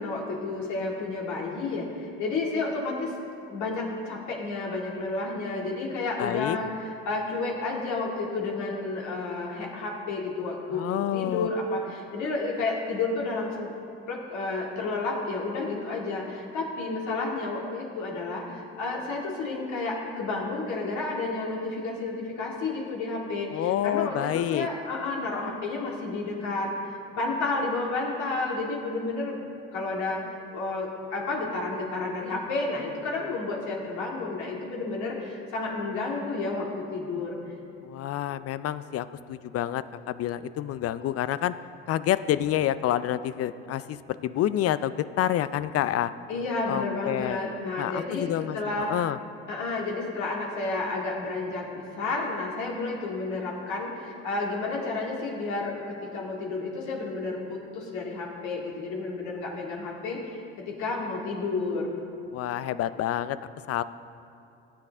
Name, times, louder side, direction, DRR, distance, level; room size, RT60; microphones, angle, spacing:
voice 1, 0.0-3.2 3.5-13.7 14.1-26.7 27.1-29.5 29.7-30.2 30.5-37.4 46.3-48.9 49.5-61.9, left 3 dB, 65° left, -2 dB, 2.4 m, -31 dB
voice 2, 6.2-6.6 10.7-11.5 23.5-24.7 37.8-41.5 41.9-46.1 46.7-47.4 47.8-49.2 62.3-63.4 63.7-63.8, left 12 dB, 50° left, 14 dB, 0.5 m, -28 dB
17.5 x 7.6 x 3.5 m, 2.7 s
hypercardioid pair, 60°, 32 cm